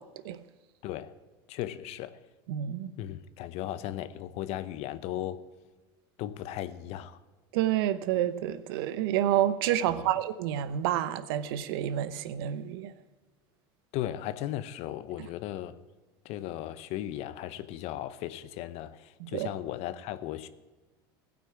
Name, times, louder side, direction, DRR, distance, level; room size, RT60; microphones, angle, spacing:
voice 1, 0.8-1.1 1.5-2.2 3.0-5.4 6.2-7.2 13.9-15.8 16.2-20.5, left 13 dB, 55° left, 0.8 m, -36 dB
voice 2, 2.5-2.9 7.5-12.9 15.2-15.3 19.2-19.5, right 11 dB, 75° right, 0.8 m, -29 dB
16.0 x 6.1 x 8.5 m
supercardioid pair, 110°, 12 cm